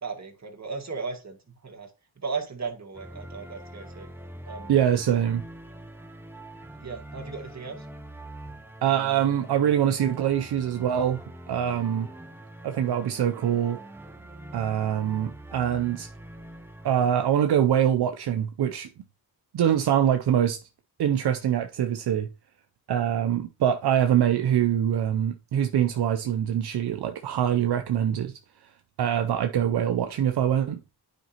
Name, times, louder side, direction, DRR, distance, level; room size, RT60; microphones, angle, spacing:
voice 1, 0.0-4.1 4.5-4.8 6.8-7.9 11.8-12.1, right 4 dB, 40° right, 2.0 m, -36 dB
sound 1, 2.9-17.4, right 1 dB, 5° right, 0.7 m, -44 dB
voice 2, 4.7-5.4 8.8-11.2 11.5-12.1 12.6-13.8 14.5-16.1 16.8-18.9 19.5-20.6 21.0-22.3 22.9-28.3 29.0-30.8, right 9 dB, 75° right, 0.6 m, -24 dB
9.0 x 5.1 x 2.9 m
cardioid pair, 60°, 39 cm